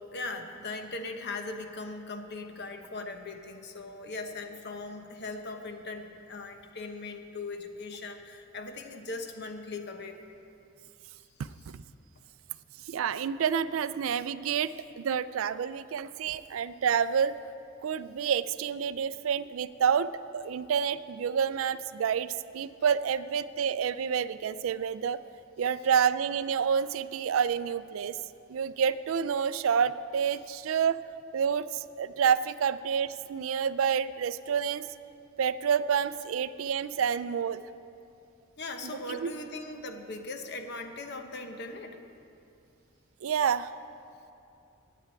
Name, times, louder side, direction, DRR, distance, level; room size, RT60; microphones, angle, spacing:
voice 1, 0.0-10.2 38.6-42.0, left 3 dB, 55° left, 6 dB, 1.0 m, -39 dB
voice 2, 12.9-17.3 17.8-25.2 25.6-28.2 28.5-31.0 31.3-34.8 35.4-37.6 38.8-39.3 43.2-43.7, right 7 dB, 75° right, 15 dB, 0.4 m, -28 dB
8.9 x 8.6 x 9.0 m, 2.6 s
head